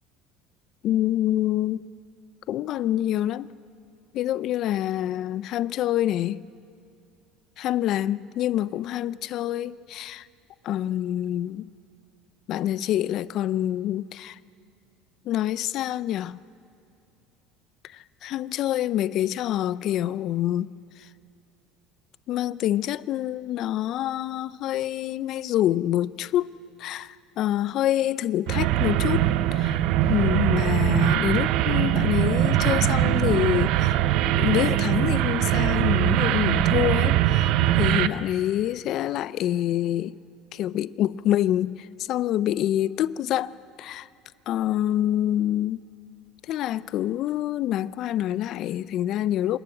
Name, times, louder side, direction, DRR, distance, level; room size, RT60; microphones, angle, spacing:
voice 1, 0.8-1.9 2.5-3.5 4.1-6.4 7.6-10.3 10.6-11.7 12.5-14.4 15.3-16.4 17.9-20.7 22.3-26.5 26.8-29.2 29.5-29.8 30.1-33.9 34.2-40.1 40.5-43.5 43.8-44.1 44.5-45.8 46.5-49.6, left 12 dB, 55° left, 0.5 m, -26 dB
sound 1, 28.5-38.1, right 13 dB, 70° right, 0.7 m, -22 dB
27.0 x 12.0 x 8.9 m
supercardioid pair, 115°, 0 cm